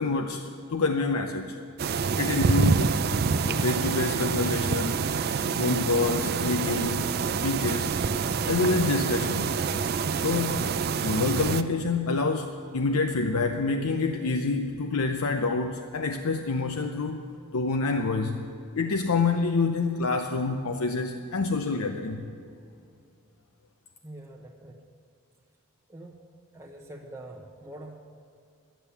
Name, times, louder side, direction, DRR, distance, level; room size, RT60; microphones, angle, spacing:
voice 1, 0.0-1.6 2.2-3.0 3.5-5.1 5.5-8.1 8.5-9.5 10.2-10.7 11.0-17.2 17.5-18.4 18.7-22.3, left 3 dB, 85° left, 5 dB, 0.6 m, -27 dB
sound 1, 1.8-11.6, right 5 dB, 45° right, 0.4 m, -27 dB
voice 2, 24.0-24.8 25.9-26.2 26.5-28.0, right 1 dB, 15° right, -1 dB, 0.8 m, -44 dB
12.0 x 10.0 x 7.0 m, 2.4 s
head